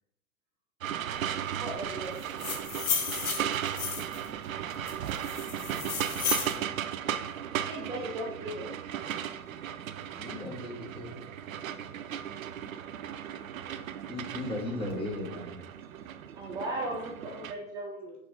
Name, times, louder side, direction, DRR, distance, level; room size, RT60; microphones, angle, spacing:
sound 1, 0.8-17.5, right 9 dB, 65° right, 0.6 m, -36 dB
voice 1, 1.6-2.1 7.5-8.8 16.4-18.2, right 1 dB, 10° right, -1 dB, 0.3 m, -37 dB
sound 2, 2.2-4.3 4.9-6.6, left 6 dB, 50° left, 1.5 m, -33 dB
voice 2, 5.5-6.7 11.5-12.5, equal, 90° left, -4 dB, 2.2 m, -52 dB
voice 3, 10.2-11.2 14.1-15.6, left 1 dB, 10° left, -3 dB, 2.0 m, -36 dB
6.3 x 5.7 x 3.7 m, 0.79 s
figure-of-eight pair, 100°, 44 cm